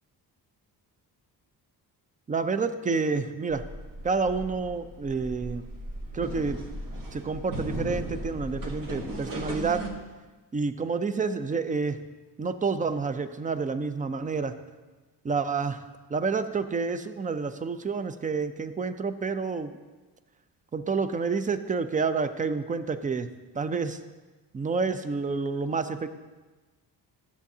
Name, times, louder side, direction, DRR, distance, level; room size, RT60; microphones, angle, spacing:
voice 1, 2.3-3.6 4.0-5.6 6.1-6.6 7.1-9.8 10.5-12.0 12.4-14.5 15.2-15.8 16.1-19.8 20.7-23.3 23.5-24.0 24.5-26.1, right 4 dB, 20° right, 11 dB, 0.3 m, -29 dB
sound 1, 3.5-9.9, right 1 dB, 50° right, 1.2 m, -37 dB
12.5 x 7.1 x 2.7 m, 1.3 s
cardioid pair, 115°, 42 cm